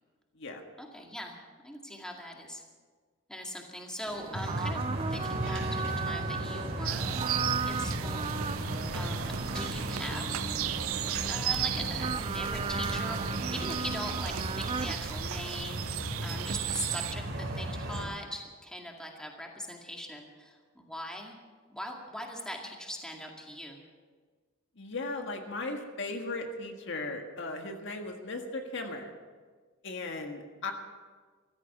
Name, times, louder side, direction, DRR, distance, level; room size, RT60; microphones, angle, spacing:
voice 1, 0.8-2.6 3.3-8.3 8.9-10.3 11.3-21.4 21.7-23.8, equal, 5° left, 0 dB, 2.1 m, -41 dB
sound 1, 4.1-14.9, right 5 dB, 25° right, 0.4 m, -37 dB
sound 2, 4.3-18.0, right 1 dB, 60° right, 3.6 m, -36 dB
sound 3, 6.8-17.1, right 12 dB, 80° right, 0.6 m, -36 dB
voice 2, 24.8-29.1 29.8-30.7, left 2 dB, 60° left, 3 dB, 1.7 m, -37 dB
14.5 x 14.0 x 7.1 m, 1.5 s
head